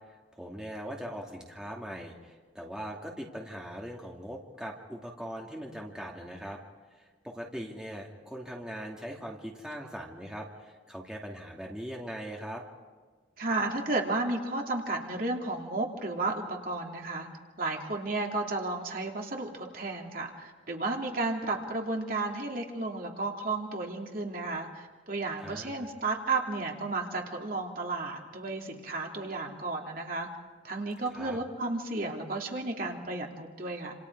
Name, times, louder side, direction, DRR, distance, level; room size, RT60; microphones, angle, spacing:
voice 1, 0.3-6.6 6.9-12.6 25.4-25.9 31.1-31.4, equal, 5° right, -2 dB, 2.7 m, -41 dB
voice 2, 13.4-17.3 17.6-30.3 30.6-33.9, right 2 dB, 50° right, 0 dB, 3.0 m, -33 dB
28.5 x 28.0 x 4.8 m, 1.4 s
head